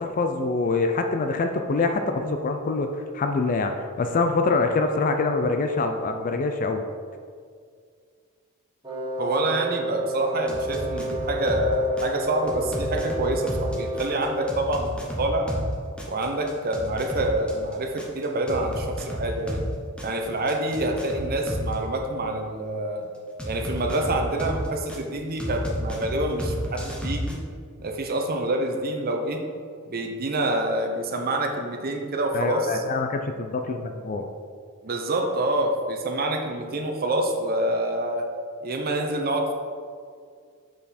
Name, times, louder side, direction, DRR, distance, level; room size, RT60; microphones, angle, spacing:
voice 1, 0.0-6.8 32.3-34.3, left 3 dB, 35° left, 5 dB, 0.4 m, -25 dB
Wind instrument woodwind instrument, 8.8-14.6, right 1 dB, 20° right, 1.6 m, -31 dB
voice 2, 9.2-15.5 16.1-19.6 20.0-23.1 23.4-27.4 27.8-29.4 29.9-32.8 34.8-38.3 38.6-39.5, right 1 dB, 40° right, 3 dB, 0.8 m, -27 dB
sound 1, 10.5-11.7 12.0-15.7 16.0-19.7 20.0-21.7 23.4-25.0 25.4-27.3, equal, 5° left, 0.9 m, -32 dB
6.3 x 5.7 x 4.2 m, 2.1 s
head